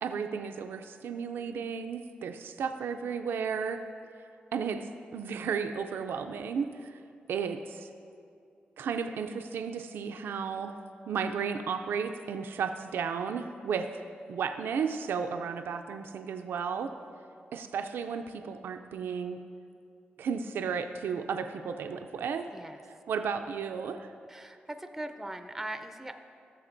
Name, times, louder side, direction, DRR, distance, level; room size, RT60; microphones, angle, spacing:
voice 1, 0.0-3.8 4.5-7.0 7.3-7.9 8.8-10.7 11.1-14.0 14.3-16.9 17.5-19.4 20.2-22.5 23.1-24.1, right 6 dB, 90° right, 7 dB, 0.3 m, -33 dB
voice 2, 24.3-26.1, right 1 dB, 5° right, 7 dB, 0.4 m, -40 dB
15.0 x 6.5 x 2.6 m, 2.4 s
wide cardioid pair, 100°, 4 cm